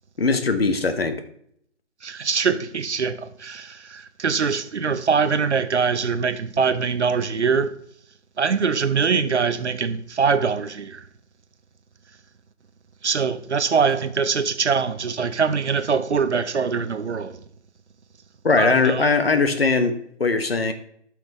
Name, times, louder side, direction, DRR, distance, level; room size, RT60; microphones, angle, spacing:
voice 1, 0.2-1.2 18.4-20.7, left 4 dB, 55° left, 1.1 m, -20 dB
voice 2, 2.0-3.2 3.4-7.7 8.4-11.0 13.0-17.3 18.6-19.0, right 5 dB, 70° right, 0.9 m, -23 dB
11.5 x 6.1 x 3.1 m
hypercardioid pair, 175°, 36 cm